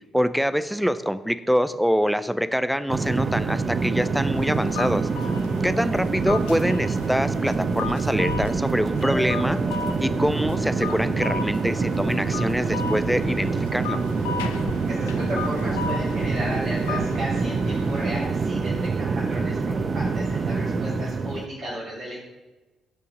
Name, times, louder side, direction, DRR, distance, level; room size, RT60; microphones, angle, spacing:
voice 1, 0.1-5.1 5.6-9.6 10.0-14.0, equal, ahead, 12 dB, 0.6 m, -25 dB
sound 1, 2.9-21.5, right 4 dB, 40° right, 0.6 m, -26 dB
sound 2, 4.3-18.3, left 7 dB, 75° left, 0.5 m, -36 dB
sound 3, 9.0-12.5, left 2 dB, 50° left, 3.9 m, -39 dB
voice 2, 14.9-22.2, right 1 dB, 60° right, -10 dB, 3.4 m, -34 dB
16.0 x 5.6 x 3.8 m, 1.1 s
figure-of-eight pair, 40°, 0 cm